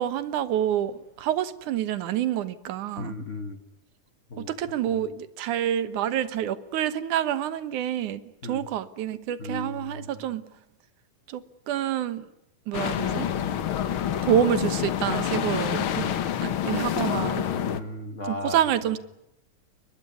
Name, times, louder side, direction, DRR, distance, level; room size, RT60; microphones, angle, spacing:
voice 1, 0.0-3.1 4.4-10.4 11.3-12.3 12.7-13.3 14.2-16.1 16.4-17.4 18.3-19.0, right 10 dB, 75° right, 2.5 m, -27 dB
voice 2, 3.0-3.6 4.3-5.0 8.4-8.7 9.4-10.1 16.0-16.3 17.6-18.6 18.9-19.0, left 2 dB, 75° left, 0.6 m, -36 dB
sound 1, 12.7-17.8, left 10 dB, 60° left, 1.5 m, -27 dB
22.5 x 21.0 x 9.5 m
omnidirectional pair, 3.7 m